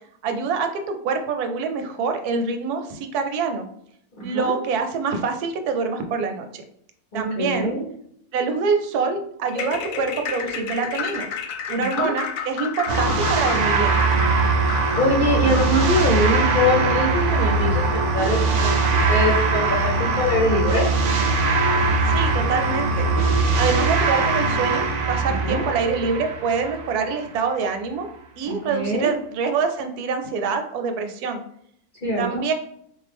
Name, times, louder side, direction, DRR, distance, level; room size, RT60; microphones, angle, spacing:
voice 1, 0.2-3.7 4.2-6.6 7.1-7.7 8.3-11.3 11.7-14.0 22.0-23.1 23.6-28.1 28.4-31.4 32.2-32.5, right 5 dB, 80° right, 6 dB, 1.1 m, -25 dB
voice 2, 4.2-4.6 7.1-7.8 11.7-12.1 15.0-20.9 25.4-25.7 28.5-29.1 32.0-32.4, left 1 dB, 50° left, -4 dB, 0.6 m, -23 dB
sound 1, 9.5-15.9, left 7 dB, 70° left, 0.9 m, -31 dB
sound 2, 12.9-27.2, right 3 dB, 65° right, 0.8 m, -21 dB
3.8 x 2.5 x 3.4 m, 0.70 s
omnidirectional pair, 1.6 m